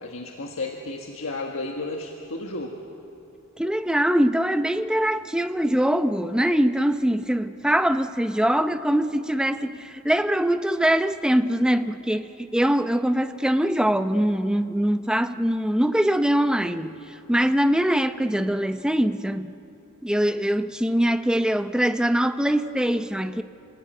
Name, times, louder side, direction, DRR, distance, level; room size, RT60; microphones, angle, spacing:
voice 1, 0.0-2.8, left 2 dB, 65° left, 1.6 m, -33 dB
voice 2, 3.6-19.5 20.0-23.4, equal, 5° right, 0.6 m, -23 dB
29.5 x 19.5 x 9.2 m
head